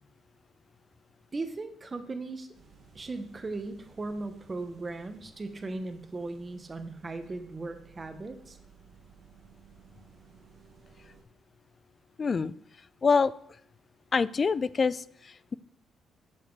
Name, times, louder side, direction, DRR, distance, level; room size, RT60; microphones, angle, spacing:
voice 1, 1.3-2.5 2.9-8.6, right 3 dB, 30° right, 8 dB, 1.0 m, -37 dB
sound 1, 2.5-11.2, right 5 dB, 55° right, 1.5 m, -57 dB
voice 2, 12.2-12.5 13.0-13.3 14.1-15.5, left 5 dB, 40° left, 18 dB, 0.3 m, -26 dB
7.2 x 6.9 x 4.6 m, 0.70 s
cardioid pair, 90°, 0 cm